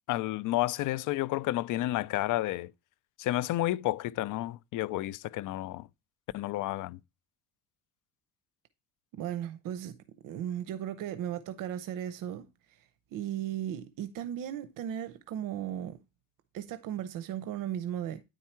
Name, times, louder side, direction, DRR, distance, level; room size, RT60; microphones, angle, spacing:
voice 1, 0.1-2.7 3.2-5.9 6.3-7.0, left 16 dB, 65° left, 0.5 m, -31 dB
voice 2, 9.1-10.0 10.2-16.0 16.5-18.2, right 10 dB, 70° right, 0.7 m, -36 dB
9.5 x 4.6 x 4.3 m
cardioid pair, 135°, 34 cm